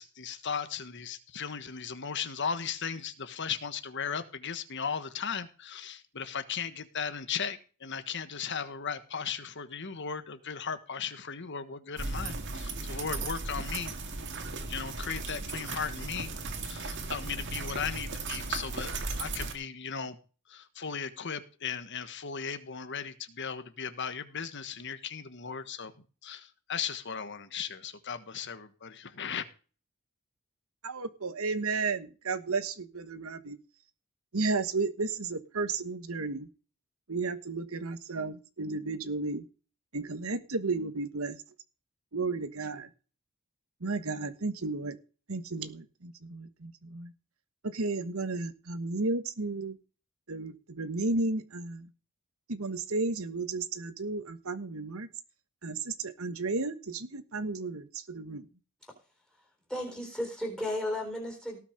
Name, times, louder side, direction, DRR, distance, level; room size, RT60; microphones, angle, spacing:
voice 1, 0.0-14.0 14.7-16.3 16.6-20.2 20.5-25.9 26.2-29.4, left 6 dB, 60° left, 1.4 m, -37 dB
sound 1, 12.0-19.5, right 3 dB, 60° right, 2.0 m, -36 dB
voice 2, 30.8-33.6 34.3-36.5 37.1-39.4 39.9-41.4 42.1-42.9 43.8-45.0 45.3-47.1 47.6-49.8 50.3-51.9 52.5-55.1 55.6-58.5, right 3 dB, 75° right, 1.3 m, -33 dB
voice 3, 59.7-61.6, left 1 dB, 5° left, 4.2 m, -34 dB
18.0 x 6.1 x 5.2 m
head